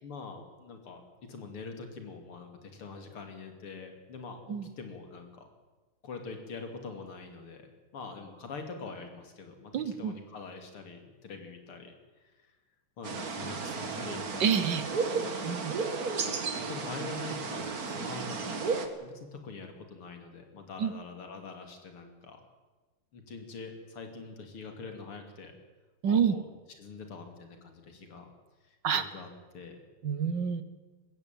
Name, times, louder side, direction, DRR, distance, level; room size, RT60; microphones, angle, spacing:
voice 1, 0.0-5.5 6.0-12.3 13.0-15.2 16.2-18.6 19.0-22.4 23.1-25.6 26.0-26.5 26.8-28.3 28.6-29.8, left 4 dB, 80° left, 5 dB, 3.6 m, -44 dB
voice 2, 9.7-10.1 14.4-14.8 15.4-15.7 20.8-20.9 26.0-26.3 28.8-29.0 30.0-30.6, right 7 dB, 60° right, 13 dB, 1.7 m, -27 dB
sound 1, 13.0-18.9, right 4 dB, 45° right, 2.1 m, -33 dB
21.0 x 15.5 x 9.1 m, 1.3 s
omnidirectional pair, 2.4 m